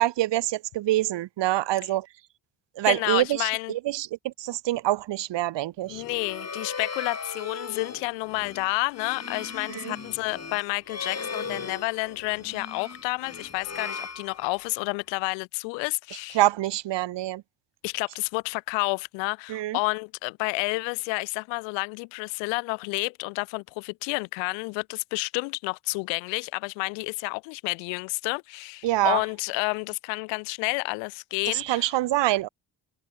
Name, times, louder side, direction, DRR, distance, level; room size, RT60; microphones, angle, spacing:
voice 1, 0.0-2.1 2.8-6.0 9.7-10.0 16.3-17.4 19.5-19.8 28.8-29.2 31.5-32.5, right 15 dB, 75° right, 1.8 m, -25 dB
voice 2, 2.8-3.7 5.9-16.4 17.8-31.9, left 31 dB, 90° left, 1.1 m, -30 dB
sound 1, 5.8-14.9, left 5 dB, 35° left, 4.8 m, -38 dB
supercardioid pair, 50°, 43 cm